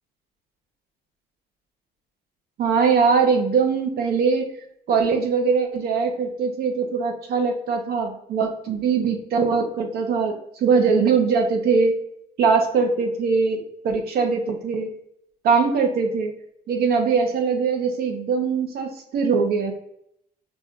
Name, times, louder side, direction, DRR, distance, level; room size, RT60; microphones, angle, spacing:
voice 1, 2.6-4.5 4.9-12.0 12.4-14.9 15.4-16.3 16.7-19.7, right 5 dB, 65° right, 4 dB, 0.9 m, -21 dB
6.0 x 2.5 x 2.4 m, 0.75 s
cardioid pair, 110°, 17 cm